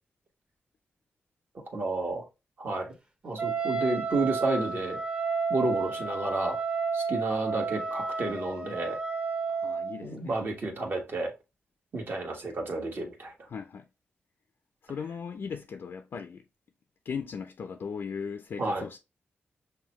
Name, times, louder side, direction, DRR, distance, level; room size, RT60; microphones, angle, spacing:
voice 1, 1.7-2.2 2.6-2.9 3.2-5.0 5.5-6.6 6.9-9.0 10.0-11.3 11.9-13.5 18.6-18.8, right 2 dB, 55° right, 1.3 m, -31 dB
Wind instrument woodwind instrument, 3.4-10.0, right 4 dB, 25° right, 0.7 m, -31 dB
voice 2, 9.5-10.4 13.5-13.9 14.8-16.4 17.1-19.0, left 6 dB, 65° left, 0.3 m, -38 dB
5.6 x 2.2 x 3.0 m
cardioid pair, 75°, 4 cm